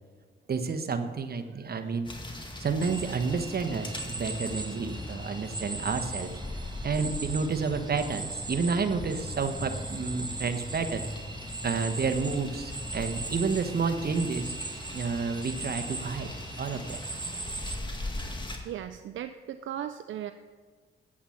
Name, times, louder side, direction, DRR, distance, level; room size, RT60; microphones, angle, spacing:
voice 1, 0.5-2.1 2.6-11.1 11.6-14.5 14.9-17.0, right 5 dB, 50° right, 7 dB, 1.1 m, -30 dB
sound 1, 2.1-18.6, left 1 dB, 25° left, 1.9 m, -40 dB
sound 2, 2.8-17.8, right 3 dB, 20° right, 1.2 m, -40 dB
voice 2, 18.6-20.3, right 10 dB, 75° right, 9 dB, 0.4 m, -37 dB
8.6 x 8.6 x 5.7 m, 1.5 s
cardioid pair, 65°, 20 cm